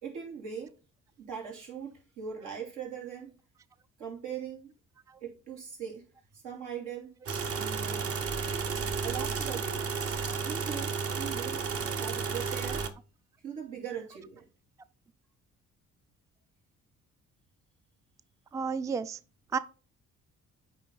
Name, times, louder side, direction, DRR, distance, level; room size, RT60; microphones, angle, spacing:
voice 1, 0.0-0.7 1.2-3.3 4.0-4.7 5.2-6.1 6.3-7.1 7.4-8.1 9.0-9.8 10.4-12.9 13.4-14.4, right 7 dB, 85° right, 2.9 m, -40 dB
sound 1, 7.3-12.9, right 5 dB, 50° right, 1.0 m, -32 dB
voice 2, 18.5-19.2 19.5-19.6, right 5 dB, 10° right, 0.3 m, -32 dB
8.7 x 3.3 x 3.9 m
cardioid pair, 90°, 30 cm